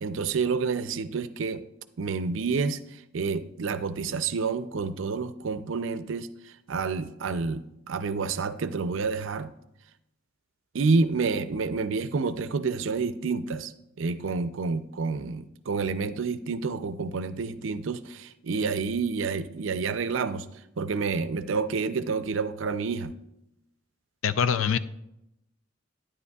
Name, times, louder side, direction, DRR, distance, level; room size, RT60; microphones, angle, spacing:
voice 1, 0.0-1.6 2.0-9.5 10.7-13.7 14.0-20.5 20.8-23.1, right 4 dB, 75° right, 12 dB, 0.5 m, -29 dB
voice 2, 24.2-24.8, left 7 dB, 80° left, 13 dB, 0.4 m, -24 dB
9.9 x 9.8 x 2.3 m, 0.85 s
head